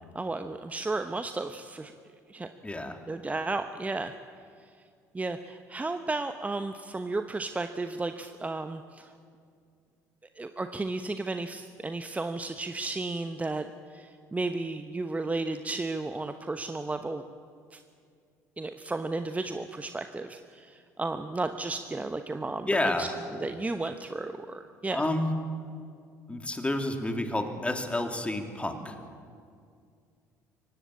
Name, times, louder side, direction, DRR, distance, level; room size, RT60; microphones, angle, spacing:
voice 1, 0.1-1.9 2.3-2.5 3.1-4.1 5.1-9.1 10.4-13.7 13.9-17.2 17.7-17.8 18.6-25.1, right 3 dB, 15° right, 8 dB, 1.0 m, -33 dB
voice 2, 2.6-3.0 22.7-23.1 24.9-25.3 26.3-28.9, left 1 dB, 15° left, 5 dB, 3.1 m, -29 dB
23.5 x 18.5 x 8.5 m, 2.3 s
figure-of-eight pair, 55°, 9 cm